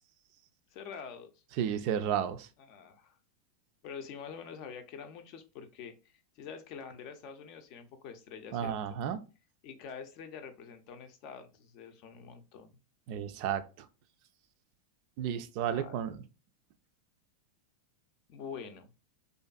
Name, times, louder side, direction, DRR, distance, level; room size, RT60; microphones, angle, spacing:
voice 1, 0.7-1.3 2.6-3.2 3.8-9.0 9.6-12.8 15.7-16.0 18.3-18.9, left 6 dB, 50° left, 7 dB, 0.5 m, -46 dB
voice 2, 1.6-2.5 8.5-9.2 13.1-13.6 15.2-16.2, right 9 dB, 55° right, 11 dB, 0.3 m, -32 dB
2.5 x 2.5 x 2.3 m, 0.31 s
hypercardioid pair, 100°, 0 cm